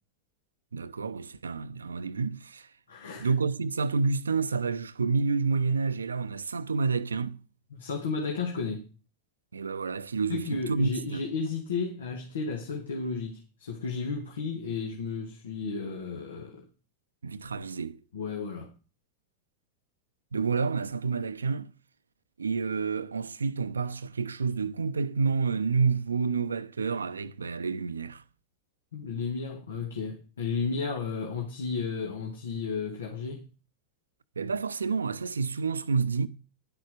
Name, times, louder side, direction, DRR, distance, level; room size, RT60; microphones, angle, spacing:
voice 1, 0.7-2.7 3.2-7.4 9.5-11.3 17.2-18.0 20.3-21.7 22.4-28.2 34.4-36.3, right 4 dB, 75° right, 0.7 m, -29 dB
voice 2, 2.9-3.3 7.7-8.9 10.3-16.6 18.1-18.7 28.9-33.4, left 4 dB, 65° left, 2.2 m, -33 dB
11.0 x 6.9 x 6.7 m
figure-of-eight pair, 90°, 0 cm